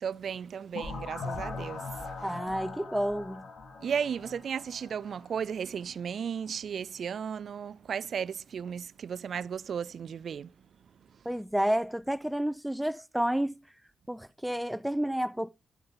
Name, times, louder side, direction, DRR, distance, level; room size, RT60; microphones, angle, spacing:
voice 1, 0.0-2.1 3.8-10.5, right 7 dB, 65° right, 0.4 m, -35 dB
sound 1, 0.7-5.4, left 3 dB, 70° left, 2.6 m, -40 dB
voice 2, 2.2-3.5 11.3-13.6 14.1-15.5, equal, 5° right, 0.6 m, -30 dB
12.5 x 5.7 x 3.8 m
hypercardioid pair, 40°, 0 cm